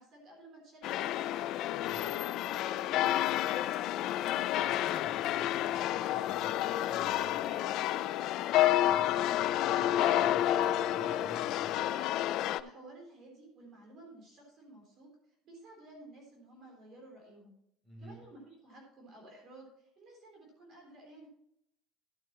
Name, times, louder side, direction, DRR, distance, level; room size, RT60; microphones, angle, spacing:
voice 1, 0.0-1.4 1.8-3.9 12.6-17.6 18.0-21.3, right 1 dB, 35° right, 0 dB, 3.5 m, -54 dB
sound 1, 0.8-12.6, left 13 dB, 45° left, 0.3 m, -30 dB
voice 2, 1.7-2.0 4.5-7.8 8.5-11.8 17.8-18.2, equal, 5° right, -3 dB, 3.2 m, -52 dB
11.5 x 9.0 x 3.0 m, 0.72 s
cardioid pair, 180°, 0 cm